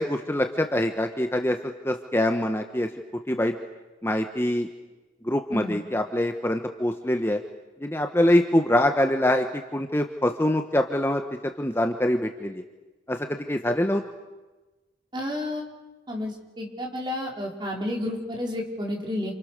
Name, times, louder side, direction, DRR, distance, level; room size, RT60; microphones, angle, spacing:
voice 1, 0.0-2.9 3.3-3.5 4.0-4.7 5.2-7.4 7.8-12.6 13.1-14.0, left 1 dB, 15° left, 5 dB, 1.3 m, -24 dB
voice 2, 15.1-15.7 16.1-19.3, left 1 dB, 25° right, 0 dB, 5.1 m, -31 dB
29.0 x 29.0 x 6.8 m, 1.2 s
head